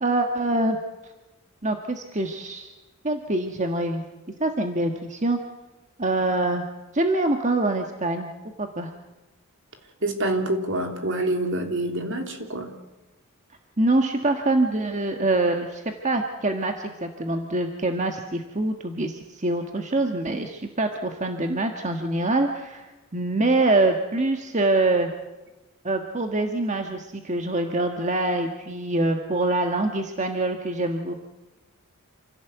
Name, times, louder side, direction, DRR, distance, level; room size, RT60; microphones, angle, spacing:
voice 1, 0.0-0.8 1.6-2.7 3.0-4.0 4.4-5.4 6.0-6.6 6.9-8.3 8.6-8.9 13.8-25.1 25.8-31.1, right 2 dB, 35° right, 4 dB, 1.5 m, -25 dB
voice 2, 10.0-12.7, right 1 dB, 60° right, 4 dB, 3.3 m, -26 dB
28.0 x 16.5 x 8.1 m, 1.1 s
head